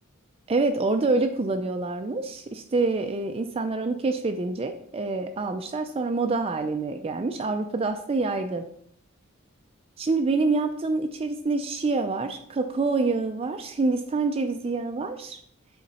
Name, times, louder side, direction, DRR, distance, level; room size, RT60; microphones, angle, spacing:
voice 1, 0.5-8.7 10.0-15.4, right 3 dB, 30° right, 7 dB, 0.4 m, -26 dB
8.3 x 3.9 x 4.1 m, 0.65 s
head